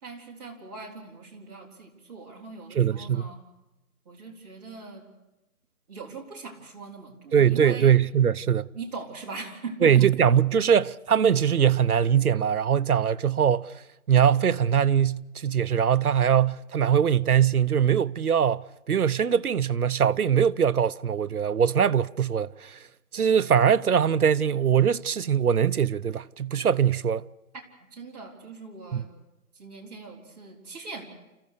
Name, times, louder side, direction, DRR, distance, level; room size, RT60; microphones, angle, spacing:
voice 1, 0.0-3.4 4.1-5.0 5.9-7.9 8.7-10.1 27.8-29.1 29.5-31.1, right 4 dB, 30° right, 4.0 m, -41 dB
voice 2, 2.7-3.3 7.3-8.7 9.8-13.7 14.1-22.8 23.1-27.2 28.9-29.0, right 8 dB, 85° right, 0.8 m, -22 dB
30.0 x 15.0 x 6.6 m
figure-of-eight pair, 155°, 43 cm